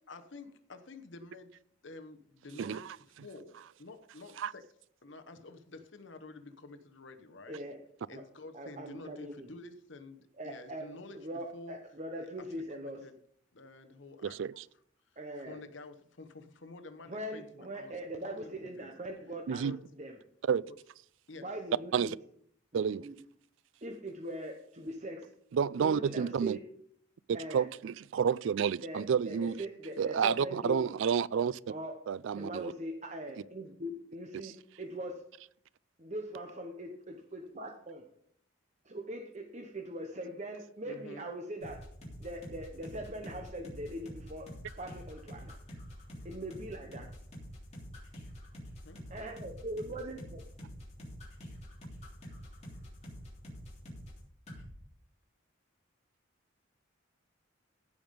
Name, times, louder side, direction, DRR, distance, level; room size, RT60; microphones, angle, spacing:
voice 1, 0.1-1.5 1.8-2.9 3.2-4.6 5.0-7.6 8.1-11.8 12.2-13.2 13.5-14.4 15.4-18.0 18.2-18.9 19.6-19.9 21.3-21.5 33.2-33.5 40.8-41.2 48.8-49.0, left 2 dB, 65° left, 1.0 m, -49 dB
voice 2, 7.5-7.8 8.1-8.2 8.5-9.5 10.4-13.0 15.2-15.6 17.1-19.6 20.0-20.2 21.4-22.1 22.7-23.1 23.8-25.3 25.8-26.6 27.3-27.7 28.8-31.0 31.7-32.0 32.3-35.2 36.0-38.0 38.8-41.8 42.2-45.6 46.2-47.1 49.1-50.4, right 1 dB, 35° right, 0.9 m, -41 dB
voice 3, 14.2-14.6 19.5-19.8 20.4-20.6 21.9-22.2 22.7-23.0 25.5-26.6 27.3-29.6 30.0-31.6 32.1-32.7 34.4-34.5, right 7 dB, 70° right, 0.3 m, -30 dB
sound 1, 41.6-54.2 54.5-54.7, equal, 35° left, 3.4 m, -46 dB
15.5 x 5.3 x 5.2 m
head